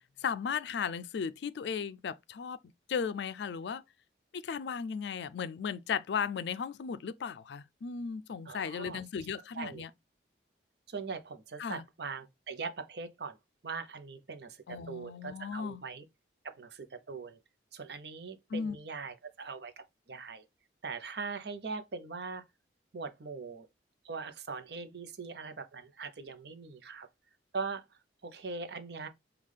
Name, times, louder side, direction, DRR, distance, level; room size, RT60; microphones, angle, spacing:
voice 1, 0.2-2.6 2.9-3.8 4.3-9.9 11.6-11.8 14.7-15.8 18.5-18.8, left 6 dB, 70° left, 0.3 m, -36 dB
voice 2, 8.5-9.0 9.5-9.8 10.9-13.4 13.6-16.0 16.4-17.4 17.7-20.4 20.8-22.4 22.9-23.7 24.0-27.1 27.5-27.8 28.2-29.1, right 4 dB, 65° right, 0.7 m, -41 dB
5.4 x 2.3 x 3.2 m
head